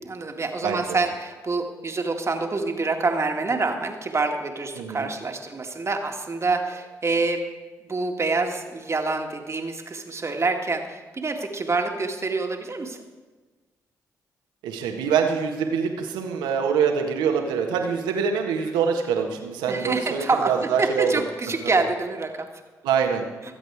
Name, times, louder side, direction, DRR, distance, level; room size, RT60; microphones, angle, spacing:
voice 1, 0.0-7.5 7.9-13.0 19.7-22.5, right 3 dB, 35° right, 4 dB, 1.9 m, -26 dB
voice 2, 0.6-1.0 4.8-5.1 14.6-21.1 22.8-23.2, right 6 dB, 80° right, 3 dB, 1.6 m, -24 dB
21.5 x 8.1 x 4.8 m, 1.3 s
hypercardioid pair, 40°, 8 cm